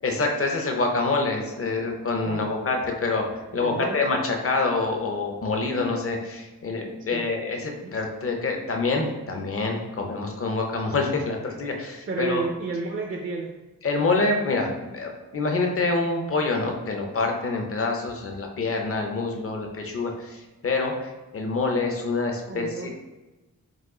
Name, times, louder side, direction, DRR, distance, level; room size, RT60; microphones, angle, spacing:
voice 1, 0.0-3.3 3.5-12.4 13.8-22.9, left 3 dB, 40° left, 2 dB, 0.7 m, -26 dB
voice 2, 3.6-4.1 7.1-7.3 7.8-7.9 12.1-13.5 22.5-22.9, right 2 dB, 40° right, 1 dB, 0.4 m, -31 dB
4.9 x 2.4 x 3.7 m, 1.1 s
wide cardioid pair, 155°, 33 cm